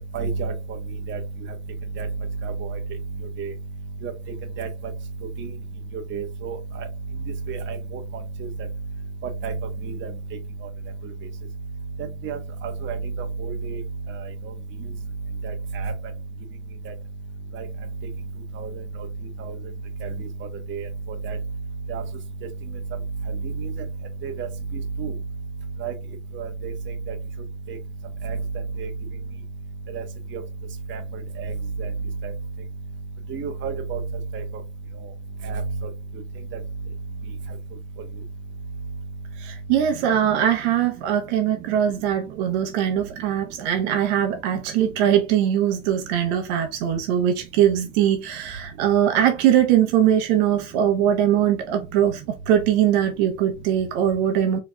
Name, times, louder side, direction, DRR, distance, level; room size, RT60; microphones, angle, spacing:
voice 1, 0.1-0.5 1.1-1.2 2.0-2.1 2.4-2.5 3.4-3.5 4.0-4.1 4.6-4.7 5.4-5.5 6.1-6.6 7.5-8.0 9.4-9.5 10.0-10.1 12.2-12.4 12.6-13.0 13.4-13.8 15.4-15.9 17.5-17.7 18.6-18.7 19.4-19.5 20.0-20.1 20.7-20.9 21.2-21.4 21.9-22.0 23.6-23.7 24.2-24.5 25.0-25.1 25.8-25.9 26.3-26.7 27.7-27.8 28.2-28.4 28.8-28.9 29.9-30.0 30.3-30.4 30.9-31.0 31.4-31.5 31.8-31.9 32.2-32.3 33.3-34.0 34.3-34.4 35.4-35.6 40.2-40.4, right 5 dB, 30° right, 1.0 m, -30 dB
voice 2, 39.4-52.2 52.5-54.6, right 10 dB, 50° right, 0.9 m, -21 dB
4.6 x 3.3 x 2.2 m
hypercardioid pair, 95°, 41 cm